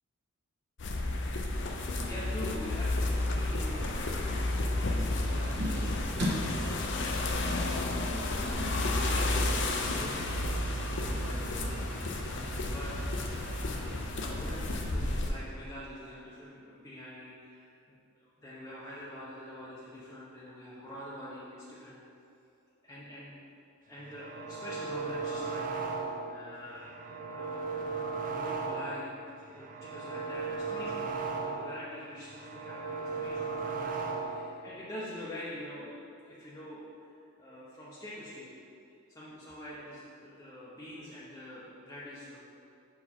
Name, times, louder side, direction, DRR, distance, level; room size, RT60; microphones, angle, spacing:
sound 1, 0.8-15.3, left 2 dB, 55° left, 0.6 m, -31 dB
voice 1, 2.1-7.9 8.4-8.8 9.1-12.1 12.7-12.9 14.1-22.0 22.8-23.4 23.9-27.0 27.3-27.6 27.9-28.0 28.3-29.2 29.5-31.1 31.3-38.5 39.1-42.4, left 1 dB, 15° left, -9 dB, 0.7 m, -45 dB
sound 2, 5.4-14.0, equal, 55° right, 1.1 m, -41 dB
sound 3, 24.0-26.4 26.7-29.1 29.5-31.8 32.2-34.5, right 4 dB, 40° right, 0.5 m, -36 dB
6.5 x 4.6 x 4.3 m, 2.5 s
head